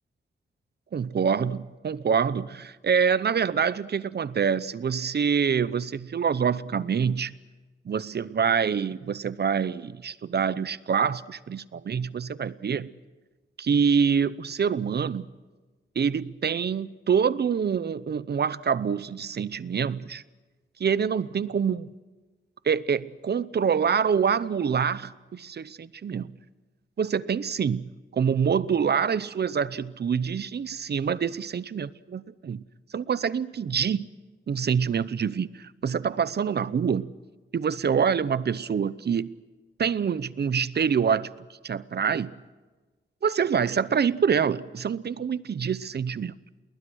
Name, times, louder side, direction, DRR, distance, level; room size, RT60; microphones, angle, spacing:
voice 1, 0.9-7.3 7.9-12.9 13.6-15.2 16.0-20.2 20.8-21.9 22.6-26.3 27.0-32.6 32.9-34.1 34.5-37.1 37.5-39.4 39.8-41.3 41.6-42.3 43.2-46.4, right 7 dB, 60° right, 18 dB, 0.8 m, -26 dB
29.5 x 21.0 x 6.4 m, 1.3 s
wide cardioid pair, 140°, 19 cm